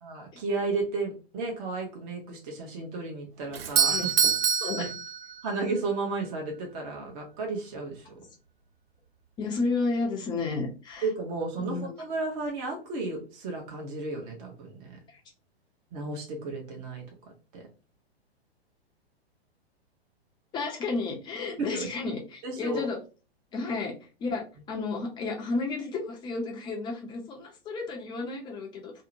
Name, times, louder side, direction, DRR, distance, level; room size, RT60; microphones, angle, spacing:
voice 1, 0.0-4.1 4.8-4.9 5.4-8.1 11.0-15.0 15.9-17.0 17.5-17.6 21.6-21.9 22.4-22.9, right 3 dB, 35° right, 1 dB, 0.9 m, -33 dB
Doorbell, 3.5-5.7, right 7 dB, 60° right, 0.6 m, -26 dB
voice 2, 9.4-11.0 11.6-11.9 15.1-15.2 20.5-23.0 23.5-23.9 24.2-28.9, left 3 dB, 15° left, 1 dB, 0.5 m, -32 dB
2.7 x 2.1 x 2.6 m, 0.34 s
figure-of-eight pair, 110°, 32 cm